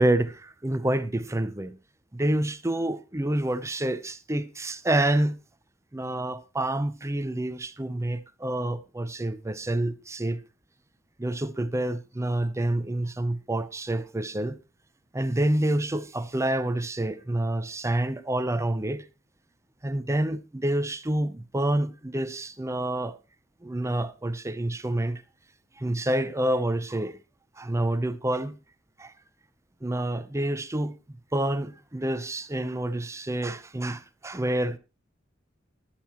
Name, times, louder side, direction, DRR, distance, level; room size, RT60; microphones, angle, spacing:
voice 1, 0.0-1.7 2.1-5.4 5.9-10.4 11.2-14.6 15.1-19.0 19.8-23.2 23.6-25.2 25.8-27.2 27.6-28.6 29.0-29.1 29.8-30.9 31.3-34.8, right 1 dB, 15° right, 0.7 m, -28 dB
15.5 x 11.5 x 3.0 m
head